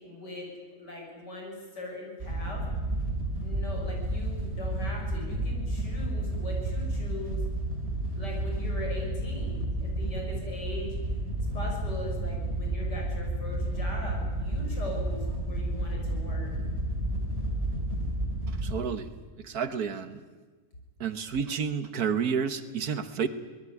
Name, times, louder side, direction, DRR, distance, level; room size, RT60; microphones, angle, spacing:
voice 1, 0.0-2.6 3.4-7.4 8.1-10.9 11.5-16.5, left 2 dB, 80° left, 0 dB, 7.0 m, -40 dB
Wind / Boat Water vehicle, 2.2-18.7, right 1 dB, 35° right, 4.2 m, -31 dB
voice 2, 18.5-19.1 19.4-20.2 21.0-23.3, right 6 dB, 65° right, 11 dB, 1.7 m, -30 dB
24.5 x 19.0 x 9.6 m, 1.3 s
omnidirectional pair, 1.8 m